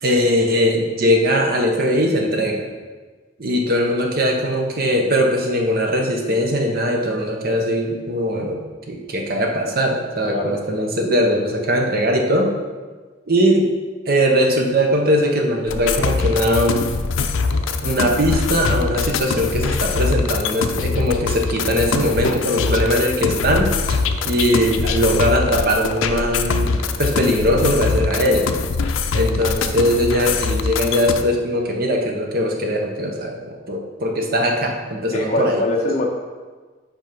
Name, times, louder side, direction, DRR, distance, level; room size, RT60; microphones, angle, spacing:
voice 1, 0.0-2.7 3.4-12.5 13.3-13.7 14.1-16.9 17.8-23.7 24.2-28.5 29.1-35.6, equal, 50° right, 1 dB, 0.9 m, -20 dB
sound 1, 15.7-31.2, left 4 dB, 80° left, 0.4 m, -23 dB
voice 2, 35.1-36.1, left 1 dB, 35° left, -2 dB, 0.7 m, -22 dB
5.5 x 4.5 x 5.2 m, 1.4 s
head